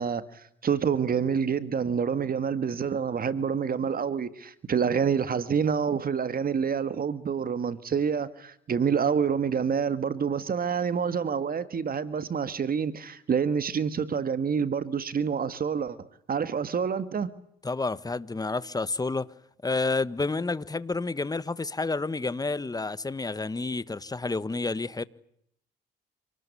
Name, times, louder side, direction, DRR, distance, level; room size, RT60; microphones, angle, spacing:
voice 1, 0.0-17.3, right 6 dB, 45° right, 2.0 m, -27 dB
voice 2, 17.6-19.3 19.6-25.0, left 3 dB, 20° left, 1.4 m, -30 dB
28.0 x 19.5 x 9.8 m
cardioid pair, 90°, 20 cm